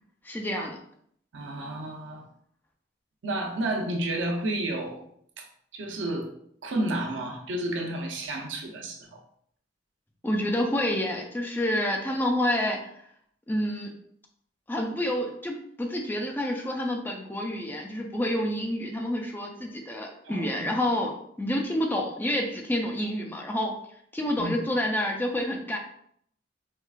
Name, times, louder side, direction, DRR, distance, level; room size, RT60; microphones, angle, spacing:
voice 1, 0.2-0.8 10.2-12.9 13.5-14.0 14.7-23.7 24.1-25.8, left 1 dB, 10° left, 1 dB, 0.4 m, -28 dB
voice 2, 1.3-2.3 3.2-5.0 5.4-5.5 5.7-6.3 6.6-9.2 20.2-20.7 24.4-24.6, right 1 dB, 80° right, 2 dB, 0.6 m, -31 dB
4.5 x 2.3 x 2.4 m, 0.66 s
head